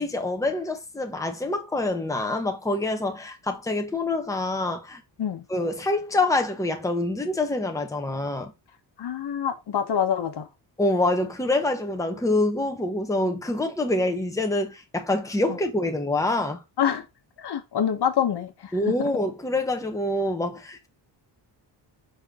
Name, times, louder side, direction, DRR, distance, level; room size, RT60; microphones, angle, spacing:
voice 1, 0.0-5.0 5.5-8.5 10.8-16.6 18.7-20.9, left 2 dB, 5° left, 1.1 m, -26 dB
voice 2, 9.0-10.5 16.8-17.0 17.4-19.1, left 8 dB, 60° left, 1.3 m, -26 dB
5.6 x 4.5 x 3.7 m
cardioid pair, 105°, 44 cm